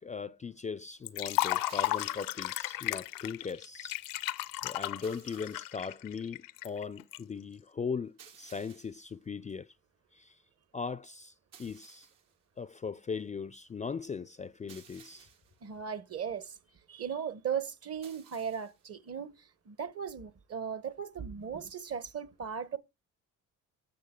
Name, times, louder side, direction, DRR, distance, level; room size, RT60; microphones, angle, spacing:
voice 1, 0.0-4.0 4.6-9.7 10.1-10.4 10.7-11.3 11.6-12.1 12.6-15.3, left 5 dB, 20° left, 0.4 m, -39 dB
Liquid, 1.1-7.2, left 16 dB, 75° left, 0.6 m, -34 dB
sound 1, 1.7-2.6 5.0-5.9 8.2-9.1 11.5-12.4 14.7-15.6 18.0-18.9, right 7 dB, 75° right, 1.9 m, -57 dB
voice 2, 15.6-16.6 16.9-22.8, right 7 dB, 45° right, 1.1 m, -37 dB
8.4 x 6.3 x 3.7 m
supercardioid pair, 70°, 34 cm